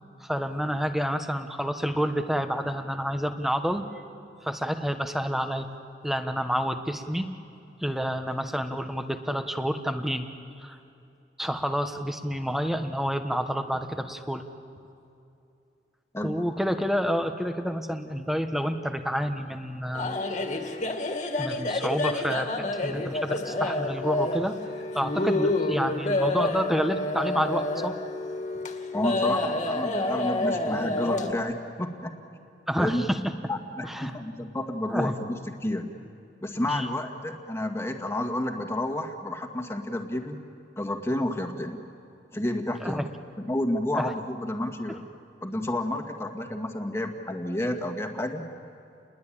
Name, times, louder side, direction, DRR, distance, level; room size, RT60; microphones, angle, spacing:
voice 1, 0.2-3.9 4.4-5.7 6.0-7.3 7.8-10.3 10.6-10.8 11.4-14.4 16.2-20.2 21.4-24.6 24.9-28.0 32.7-33.2 33.8-34.1 34.9-35.1 36.7-36.9 42.8-43.0 43.9-44.1, equal, ahead, 7 dB, 1.3 m, -29 dB
sound 1, 19.9-31.3, left 2 dB, 45° left, 2.2 m, -28 dB
voice 2, 28.9-32.1 32.8-33.1 33.5-35.9 36.4-40.4 40.8-41.8 42.3-43.0 43.4-45.1 45.4-48.4, left 1 dB, 15° left, 4 dB, 1.9 m, -30 dB
29.5 x 21.5 x 8.9 m, 2.6 s
head